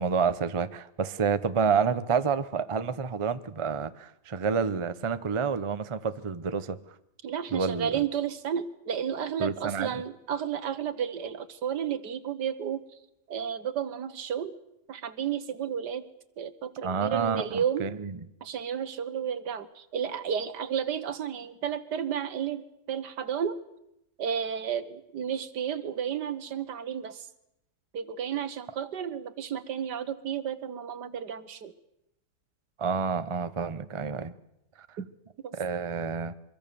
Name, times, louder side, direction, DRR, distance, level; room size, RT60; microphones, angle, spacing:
voice 1, 0.0-6.8 7.5-8.0 9.4-10.0 16.8-18.1 32.8-34.3 35.5-36.3, right 6 dB, 30° right, 12 dB, 0.6 m, -29 dB
voice 2, 7.2-12.8 13.3-14.6 14.9-16.1 16.4-17.9 18.4-23.6 24.2-27.3 27.9-31.7 35.0-35.1 35.4-35.5, right 8 dB, 80° right, 12 dB, 1.9 m, -32 dB
24.0 x 23.5 x 7.0 m, 0.84 s
omnidirectional pair, 1.8 m